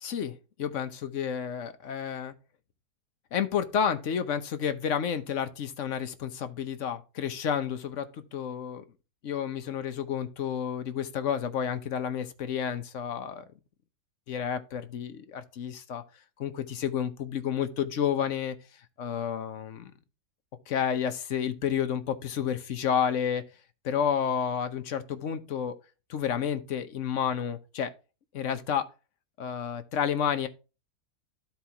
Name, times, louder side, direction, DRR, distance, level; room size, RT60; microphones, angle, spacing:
voice 1, 0.0-2.3 3.3-8.8 9.2-13.4 14.3-16.0 16.4-18.6 19.0-19.9 20.7-23.4 23.8-25.8 26.1-27.9 28.3-28.9 29.4-30.5, left 8 dB, 55° left, 1.1 m, -30 dB
13.0 x 4.6 x 2.9 m
omnidirectional pair, 1.7 m